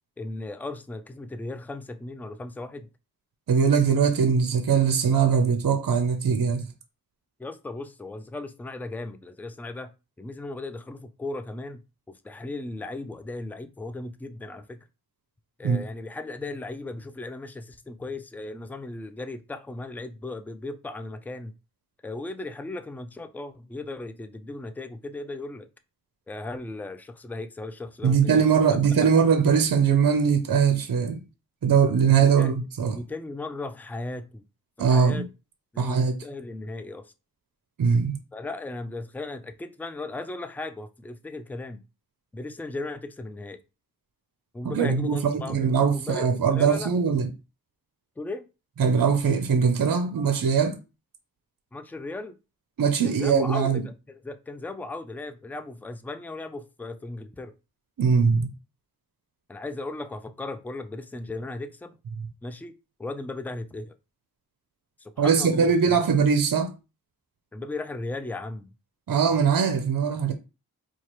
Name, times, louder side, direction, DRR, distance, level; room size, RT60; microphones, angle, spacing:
voice 1, 0.2-2.9 7.4-9.9 10.2-11.8 12.1-14.8 15.6-21.5 22.0-25.7 26.3-28.4 28.7-29.2 32.2-32.5 32.9-34.4 34.8-35.3 35.7-37.1 38.3-41.8 42.3-43.6 44.5-46.9 48.2-48.4 51.7-52.4 53.0-57.5 59.5-62.0 62.4-62.7 63.0-63.9 65.0-65.7 67.5-68.7, left 2 dB, 5° left, 0.3 m, -36 dB
voice 2, 3.5-6.7 15.6-15.8 28.0-31.2 31.6-33.0 34.8-35.3 35.8-36.2 37.8-38.2 44.6-47.3 48.8-50.8 52.8-53.8 58.0-58.5 65.2-66.7 69.1-70.3, right 6 dB, 60° right, 0.6 m, -21 dB
4.4 x 2.4 x 3.0 m
wide cardioid pair, 65°, 37 cm